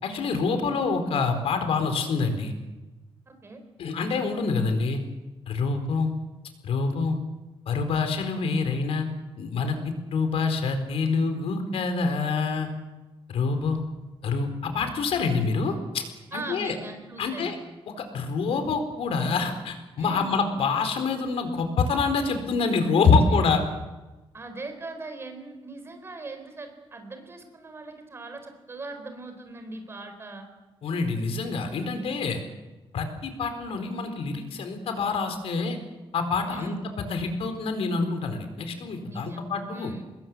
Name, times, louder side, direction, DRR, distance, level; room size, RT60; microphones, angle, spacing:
voice 1, 0.0-2.5 3.8-5.0 5.5-6.1 6.6-7.2 7.7-9.1 9.4-12.7 13.3-13.8 14.2-16.0 16.3-16.7 17.2-17.6 18.0-23.6 30.8-32.4 32.9-35.8 36.1-39.9, left 4 dB, 90° left, 7 dB, 4.3 m, -26 dB
voice 2, 3.3-3.6 16.3-17.6 20.0-20.3 23.3-23.4 24.3-30.5 36.4-36.9 39.1-39.4 39.7-40.0, right 3 dB, 25° right, 7 dB, 4.2 m, -40 dB
25.5 x 21.0 x 7.9 m, 1.1 s
wide cardioid pair, 180°, 10 cm